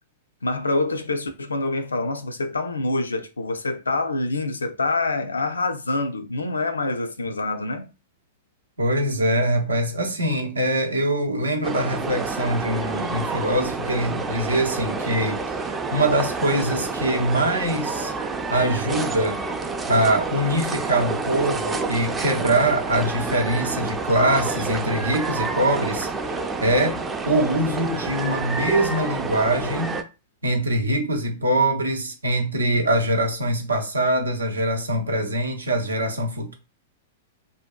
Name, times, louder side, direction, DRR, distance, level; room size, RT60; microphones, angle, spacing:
voice 1, 0.4-7.9, left 2 dB, 85° left, 0.4 m, -26 dB
voice 2, 8.8-15.4 15.6-18.1 18.5-19.4 19.9-26.1 26.6-30.0 30.4-36.5, right 1 dB, 85° right, 0.6 m, -23 dB
sound 1, 11.6-30.0, right 4 dB, 15° right, 0.4 m, -28 dB
2.6 x 2.2 x 2.2 m
hypercardioid pair, 105°, 0 cm